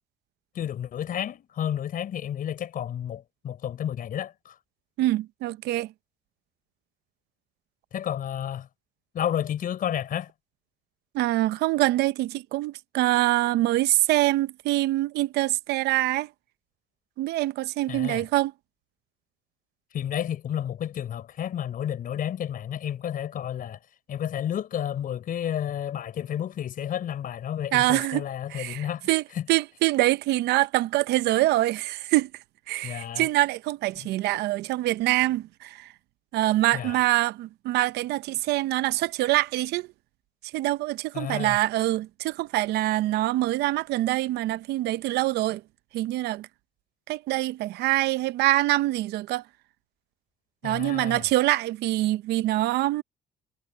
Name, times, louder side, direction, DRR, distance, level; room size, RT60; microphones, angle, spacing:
voice 1, 0.5-4.5 7.9-8.7 9.1-10.3 17.9-18.2 19.9-23.8 24.1-29.1 29.3-29.5 32.8-33.3 36.7-37.0 41.1-41.6 50.6-51.2, left 10 dB, 55° left, 4.5 m, -31 dB
voice 2, 5.0-5.9 11.1-16.3 17.2-18.5 27.7-28.2 28.5-29.2 29.5-32.3 32.7-35.9 36.3-39.9 40.5-45.6 45.9-46.5 47.1-49.4 50.6-53.0, right 17 dB, 80° right, 0.7 m, -25 dB
cardioid pair, 110°, 17 cm